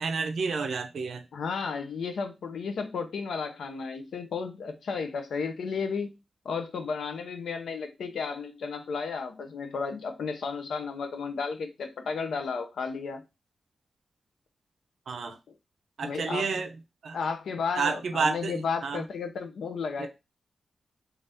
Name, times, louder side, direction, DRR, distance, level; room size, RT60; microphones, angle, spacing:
voice 1, 0.0-1.2 15.1-15.4 16.0-16.8 17.0-17.2 17.7-19.0 20.0-20.1, right 4 dB, 80° right, 0.4 m, -30 dB
voice 2, 1.3-6.1 6.4-13.2 16.0-16.5 17.1-20.1, left 5 dB, 90° left, 0.4 m, -33 dB
3.4 x 2.3 x 2.6 m
cardioid pair, 70°, 0 cm